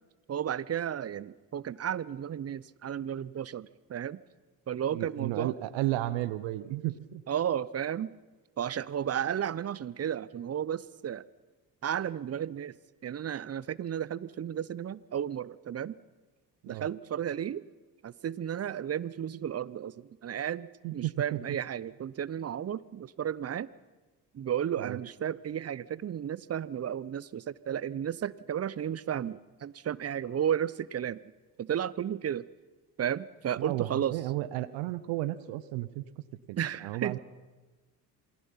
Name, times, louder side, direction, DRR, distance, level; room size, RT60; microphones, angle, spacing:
voice 1, 0.3-4.2 4.7-5.5 7.3-8.1 8.6-11.2 11.8-12.7 13.0-15.9 16.7-17.6 18.0-23.7 24.3-31.2 31.6-32.4 33.0-34.2 36.6-37.2, right 9 dB, 30° right, 21 dB, 0.8 m, -33 dB
voice 2, 4.9-7.2 16.6-16.9 20.8-21.4 24.8-25.0 33.6-37.2, right 16 dB, 65° right, 16 dB, 1.1 m, -33 dB
28.0 x 20.0 x 5.7 m, 1.2 s
hypercardioid pair, 55°, 49 cm